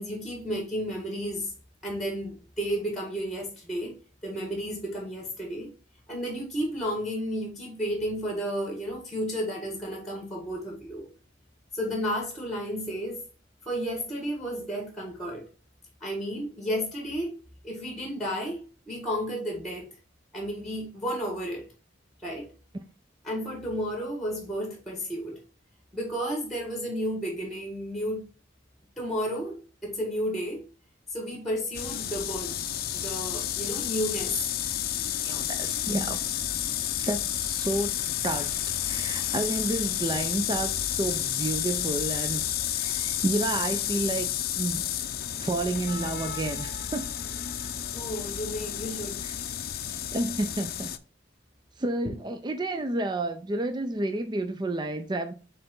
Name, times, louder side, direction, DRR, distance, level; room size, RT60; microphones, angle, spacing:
voice 1, 0.0-1.5 1.8-3.9 4.2-5.7 6.1-11.1 11.7-13.2 13.6-15.5 16.0-17.3 17.6-19.9 20.3-21.7 22.2-22.5 23.2-25.4 25.9-28.3 29.0-30.7 31.1-32.6 32.9-34.4 47.9-49.2, equal, ahead, 1.7 m, -32 dB
sound 1, 31.7-51.0, left 11 dB, 50° left, 0.5 m, -31 dB
voice 2, 35.2-36.2 37.0-38.0 38.2-38.6 38.8-44.3 44.6-44.8 45.4-47.1 49.2-49.3 50.1-50.9 51.8-55.3, right 2 dB, 25° right, 0.4 m, -30 dB
6.5 x 3.9 x 3.8 m
head